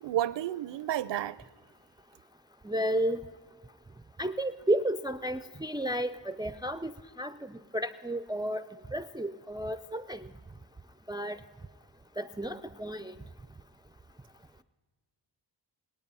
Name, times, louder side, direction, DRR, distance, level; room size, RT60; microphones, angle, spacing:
voice 1, 0.0-1.4, right 12 dB, 65° right, 0.6 m, -31 dB
voice 2, 2.6-3.2 4.2-8.6 8.9-10.3 11.1-11.4 12.2-13.1, right 1 dB, 10° right, 0.3 m, -32 dB
21.0 x 9.0 x 5.5 m
cardioid pair, 100°, 46 cm